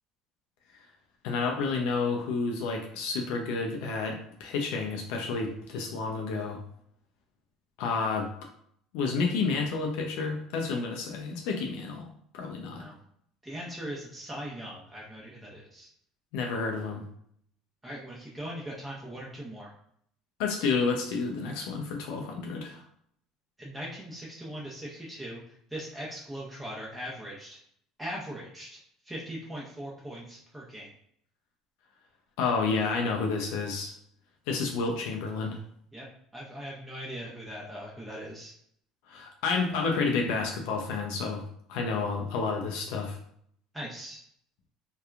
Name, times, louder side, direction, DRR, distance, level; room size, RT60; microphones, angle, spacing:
voice 1, 1.2-6.6 7.8-8.3 8.9-12.1 12.3-12.9 16.3-17.0 20.4-22.8 32.4-33.9 34.5-35.6 39.1-41.4 41.7-43.2, left 4 dB, 75° left, 1 dB, 0.4 m, -30 dB
voice 2, 13.4-15.9 17.8-19.7 23.6-27.6 28.0-28.8 29.0-30.9 35.9-36.1 36.3-38.5 43.7-44.2, equal, 10° right, -5 dB, 0.7 m, -40 dB
2.8 x 2.3 x 2.3 m, 0.65 s
hypercardioid pair, 80°, 0 cm